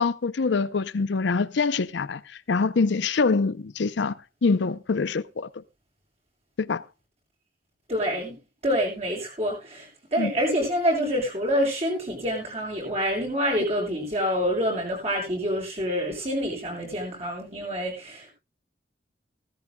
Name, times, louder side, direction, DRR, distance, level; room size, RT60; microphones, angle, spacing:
voice 1, 0.0-4.1 4.4-5.6 6.6-6.8 10.2-10.3, left 4 dB, 75° left, 0.6 m, -25 dB
voice 2, 7.9-18.3, equal, 35° right, 6.8 m, -27 dB
17.0 x 14.0 x 2.2 m
head